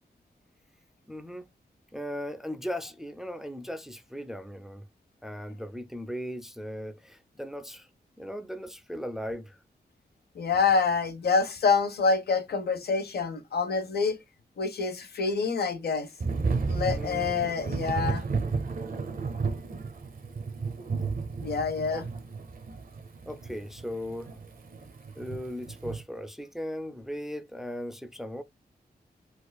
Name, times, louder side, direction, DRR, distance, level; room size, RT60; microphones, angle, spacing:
voice 1, 1.1-1.5 1.9-4.8 5.2-7.9 8.2-9.6 16.9-17.4 21.9-22.1 23.2-24.3 25.2-28.4, equal, ahead, 0.4 m, -37 dB
voice 2, 10.4-14.2 14.6-16.1 16.7-18.2 21.4-22.0, left 4 dB, 85° left, 0.7 m, -26 dB
Thunder / Rain, 16.2-26.0, right 4 dB, 60° right, 0.7 m, -33 dB
4.4 x 2.4 x 2.2 m
wide cardioid pair, 110°, 16 cm